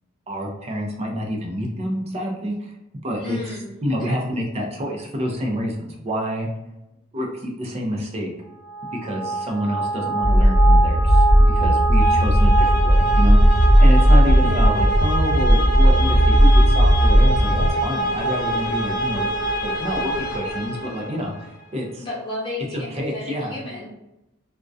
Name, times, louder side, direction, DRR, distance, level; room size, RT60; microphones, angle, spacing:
voice 1, 0.3-2.7 3.0-3.6 3.8-6.5 7.1-8.3 8.9-19.3 19.6-22.1 22.7-23.6, equal, 30° right, 0 dB, 0.5 m, -28 dB
voice 2, 3.2-4.2 14.4-14.7 22.0-23.9, left 2 dB, 25° left, -6 dB, 0.9 m, -33 dB
sound 1, 8.6-21.5, right 2 dB, 50° left, 0.6 m, -25 dB
sound 2, 10.2-17.7, equal, 70° right, 0.8 m, -15 dB
2.3 x 2.1 x 2.5 m, 0.93 s
head